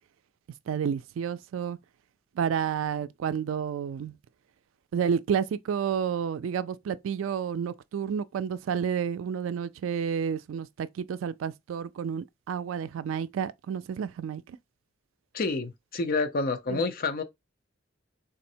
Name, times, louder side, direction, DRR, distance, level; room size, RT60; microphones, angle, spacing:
voice 1, 0.7-1.8 2.4-4.2 4.9-14.6 16.7-16.8, right 7 dB, 75° right, 0.3 m, -30 dB
voice 2, 15.3-17.2, left 3 dB, 50° left, 0.5 m, -28 dB
3.6 x 2.0 x 2.6 m
head